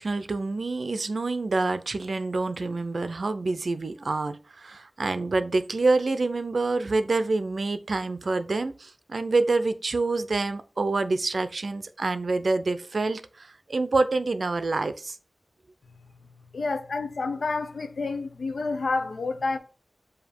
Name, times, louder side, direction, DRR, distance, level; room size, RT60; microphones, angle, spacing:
voice 1, 0.0-15.2, right 3 dB, 65° right, 0.6 m, -27 dB
voice 2, 16.5-19.6, left 3 dB, 85° left, 0.8 m, -29 dB
7.1 x 2.8 x 5.3 m
wide cardioid pair, 75°, 0 cm